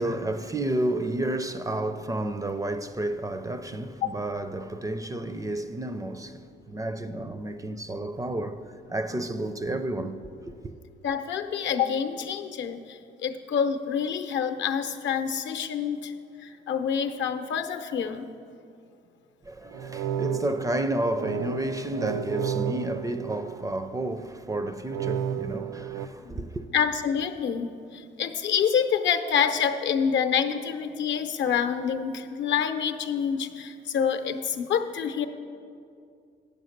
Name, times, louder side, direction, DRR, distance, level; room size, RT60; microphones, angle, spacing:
voice 1, 0.0-10.3 10.6-10.7 19.4-26.7, right 1 dB, 15° right, 0.4 m, -31 dB
voice 2, 11.0-16.1 16.4-18.3 26.2-35.3, left 7 dB, 65° left, 0.6 m, -27 dB
sound 1, 19.7-24.0 24.9-26.1, right 8 dB, 85° right, 0.4 m, -32 dB
8.3 x 6.6 x 6.5 m
cardioid pair, 90°, 20 cm